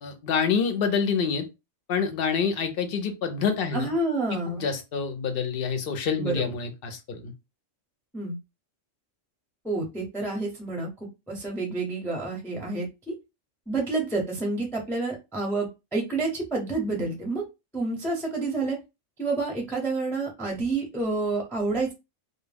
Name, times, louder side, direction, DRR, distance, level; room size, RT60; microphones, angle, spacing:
voice 1, 0.0-1.5 1.9-3.9 4.3-7.3, left 6 dB, 60° left, 7 dB, 0.6 m, -27 dB
voice 2, 3.7-4.6 6.2-6.4 8.1-8.4 9.6-10.9 11.3-13.2 13.7-17.4 17.7-18.8 19.2-21.9, right 3 dB, 5° left, 0 dB, 0.4 m, -29 dB
2.1 x 2.1 x 3.3 m, 0.25 s
omnidirectional pair, 1.3 m